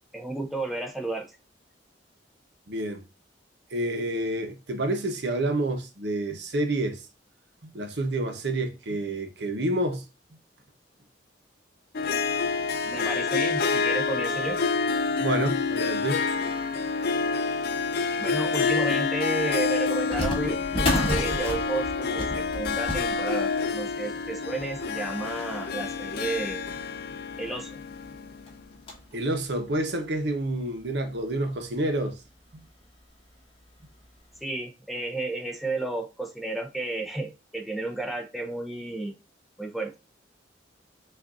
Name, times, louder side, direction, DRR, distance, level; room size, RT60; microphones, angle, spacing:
voice 1, 0.1-1.3 12.8-14.6 18.2-26.6 27.4-27.8 34.4-39.1 39.6-39.9, right 2 dB, ahead, 0.5 m, -32 dB
voice 2, 2.7-3.1 3.7-7.0 7.6-10.0 15.2-16.2 29.1-32.2 32.5-32.6, right 1 dB, 65° right, 0.9 m, -28 dB
Harp, 11.9-28.4, left 5 dB, 55° left, 0.5 m, -28 dB
sound 1, 20.1-27.0 27.6-27.7 27.9-28.1 28.5-29.2 29.7-29.8 30.6-30.7 31.1-31.2 32.6-32.9 33.3-33.4 34.0-34.2, equal, 30° left, 1.3 m, -33 dB
6.0 x 2.6 x 2.5 m
head